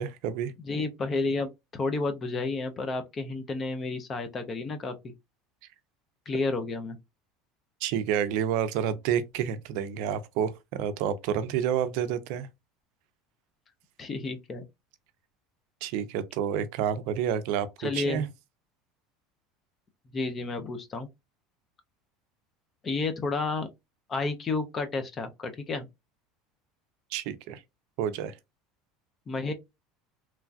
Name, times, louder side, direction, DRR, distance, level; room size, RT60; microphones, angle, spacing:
voice 1, 0.0-0.5 7.8-12.5 15.8-18.3 27.1-27.6 28.0-28.3, right 9 dB, 65° right, 0.4 m, -29 dB
voice 2, 0.6-5.1 6.3-7.0 14.0-14.7 17.8-18.2 20.1-21.1 22.8-23.7 24.1-25.9 29.3-29.5, left 3 dB, 25° left, 0.5 m, -31 dB
3.0 x 2.3 x 2.4 m
cardioid pair, 155°, 0 cm